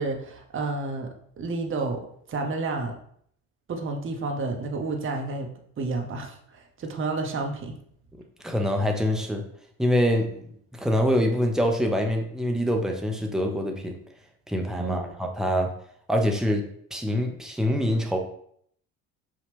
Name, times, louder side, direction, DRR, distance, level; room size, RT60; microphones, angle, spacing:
voice 1, 0.0-2.0 2.3-3.0 3.7-5.5 5.8-7.8 14.8-15.1, right 3 dB, 30° right, 3 dB, 0.9 m, -30 dB
voice 2, 8.4-9.4 9.8-10.5 10.7-14.0 14.5-15.7 16.1-16.6 16.9-18.2, equal, ahead, 1 dB, 0.8 m, -25 dB
5.1 x 2.4 x 3.3 m, 0.66 s
hypercardioid pair, 60°, 42 cm